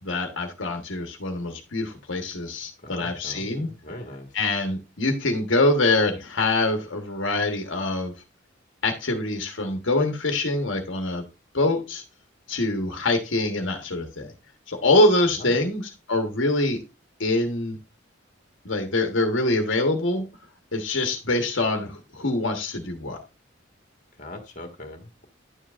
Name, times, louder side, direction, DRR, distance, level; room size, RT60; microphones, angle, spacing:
voice 1, 0.0-3.7 4.3-8.1 8.8-11.3 11.5-12.0 12.5-14.3 14.7-16.8 17.2-17.8 18.6-20.3 20.7-23.2, left 2 dB, 75° left, 1.2 m, -24 dB
voice 2, 2.8-4.3 15.4-15.7 24.2-25.2, left 1 dB, 40° left, 1.5 m, -40 dB
10.5 x 7.2 x 2.5 m
head